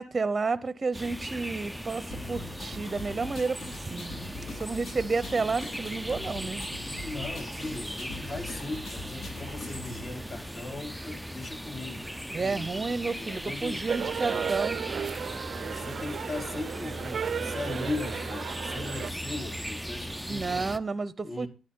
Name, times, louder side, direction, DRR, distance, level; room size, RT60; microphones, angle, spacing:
voice 1, 0.0-6.6 12.3-14.8 20.3-21.5, right 4 dB, 30° right, 0.9 m, -31 dB
sound 1, 0.9-20.8, equal, ahead, 0.6 m, -38 dB
sound 2, 2.1-10.1, left 3 dB, 65° left, 7.6 m, -42 dB
voice 2, 7.0-12.9 13.2-13.8 14.2-14.5 15.4-20.7 21.2-21.5, left 2 dB, 40° left, 3.3 m, -38 dB
sound 3, 13.9-19.1, right 7 dB, 50° right, 0.6 m, -34 dB
12.5 x 9.4 x 3.7 m
cardioid pair, 90°, 0 cm